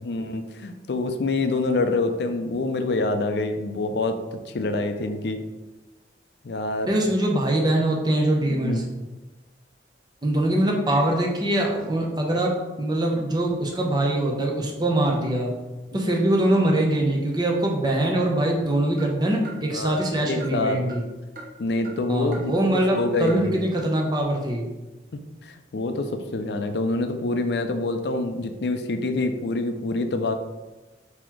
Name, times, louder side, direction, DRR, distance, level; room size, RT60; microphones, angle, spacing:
voice 1, 0.0-5.4 6.4-6.9 8.5-8.8 19.7-20.8 21.6-22.5 22.9-23.6 25.4-30.3, left 2 dB, 65° left, 7 dB, 0.4 m, -26 dB
voice 2, 6.9-8.8 10.2-15.5 15.9-21.0 22.1-24.7, right 1 dB, 25° right, -1 dB, 0.7 m, -23 dB
sound 1, 18.9-22.1 22.3-23.0 23.3-23.4 23.7-23.9, right 2 dB, 50° right, 0.9 m, -43 dB
4.0 x 2.9 x 4.6 m, 1.1 s
head